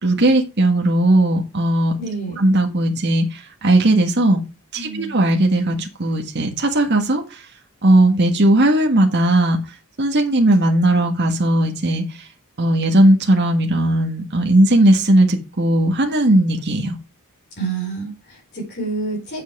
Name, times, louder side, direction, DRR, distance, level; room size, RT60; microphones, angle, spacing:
voice 1, 0.0-1.9 2.4-4.4 4.7-7.4 7.8-9.6 10.0-12.0 12.6-17.0, right 1 dB, 50° right, 1.6 m, -17 dB
voice 2, 2.0-2.4 4.7-5.1 17.6-19.4, right 4 dB, 50° left, 5.0 m, -28 dB
8.3 x 7.5 x 4.9 m
head